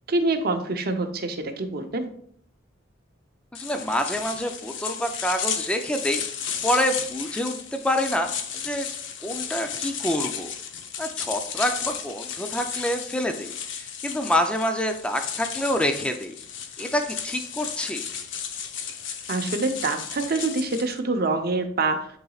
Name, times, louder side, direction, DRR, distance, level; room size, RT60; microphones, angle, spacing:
voice 1, 0.1-2.1 19.3-22.1, right 3 dB, 50° right, 5 dB, 0.7 m, -26 dB
sound 1, 3.5-21.0, left 7 dB, 60° left, 0.6 m, -34 dB
voice 2, 3.5-6.2 6.6-8.9 9.2-10.5 11.0-13.5 13.8-16.3 16.8-18.0, equal, 5° left, 5 dB, 0.4 m, -27 dB
11.0 x 4.0 x 2.4 m, 0.64 s
head